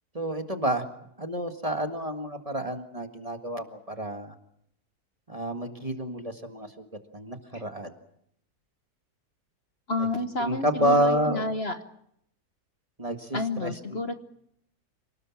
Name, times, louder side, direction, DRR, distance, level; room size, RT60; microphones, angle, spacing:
voice 1, 0.1-0.8 1.2-4.3 5.3-6.9 7.1-7.9 10.4-11.5 13.0-14.1, right 1 dB, 25° right, 6 dB, 1.8 m, -29 dB
voice 2, 9.9-11.8 13.3-14.1, left 2 dB, 45° left, 8 dB, 1.4 m, -30 dB
28.0 x 19.0 x 7.3 m, 0.74 s
omnidirectional pair, 1.6 m